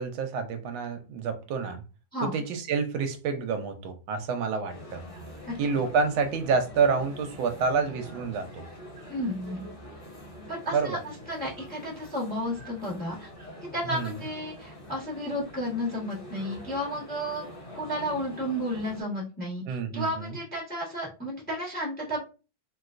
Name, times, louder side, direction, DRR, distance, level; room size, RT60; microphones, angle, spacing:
voice 1, 0.0-1.8 2.2-5.0 5.6-8.6 10.7-11.0 13.9-14.2 19.7-20.4, right 5 dB, 85° right, 1.4 m, -28 dB
voice 2, 2.1-2.4 9.1-9.7 10.5-11.0 11.3-13.3 13.7-17.5 17.7-22.2, equal, 5° left, 0.7 m, -32 dB
sound 1, 4.7-19.0, equal, 30° left, 1.5 m, -45 dB
3.1 x 3.0 x 2.4 m
omnidirectional pair, 2.1 m